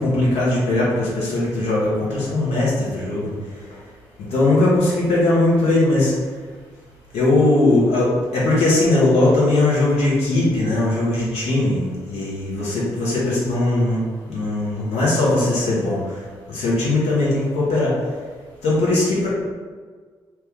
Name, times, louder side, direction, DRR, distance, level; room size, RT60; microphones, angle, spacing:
voice 1, 0.0-3.3 4.2-6.1 7.1-16.0 16.5-17.9 18.6-19.3, left 2 dB, 65° left, -6 dB, 1.1 m, -19 dB
2.8 x 2.3 x 3.7 m, 1.5 s
figure-of-eight pair, 40°, 12 cm